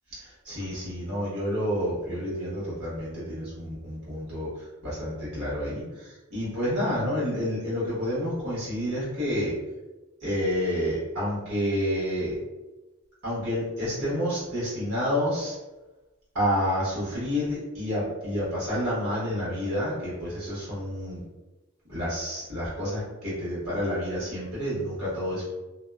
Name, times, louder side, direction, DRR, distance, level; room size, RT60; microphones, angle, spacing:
voice 1, 0.1-9.5 10.2-12.4 13.2-15.6 16.3-21.2 21.9-25.4, equal, 80° right, -8 dB, 1.3 m, -29 dB
2.7 x 2.1 x 2.3 m, 1.1 s
head